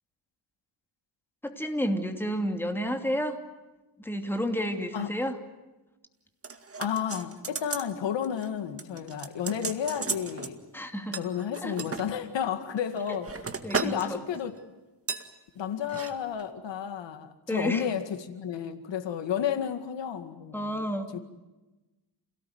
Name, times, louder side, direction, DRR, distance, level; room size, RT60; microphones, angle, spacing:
voice 1, 1.4-3.4 4.0-5.4 10.7-11.2 11.6-11.8 13.6-14.2 17.5-17.9 20.5-21.1, equal, 5° left, 5 dB, 2.7 m, -31 dB
sound 1, 6.4-7.9 8.2-8.5 8.8-10.5 11.1-12.1 12.7-14.1 14.3-14.6 15.1-15.3 15.8-16.1 16.4-16.5, right 5 dB, 30° right, 2.0 m, -35 dB
voice 2, 6.8-10.6 11.1-13.3 13.7-14.6 15.6-20.9, left 8 dB, 85° left, 8 dB, 2.2 m, -32 dB
28.0 x 18.0 x 9.5 m, 1.1 s
cardioid pair, 115°, 43 cm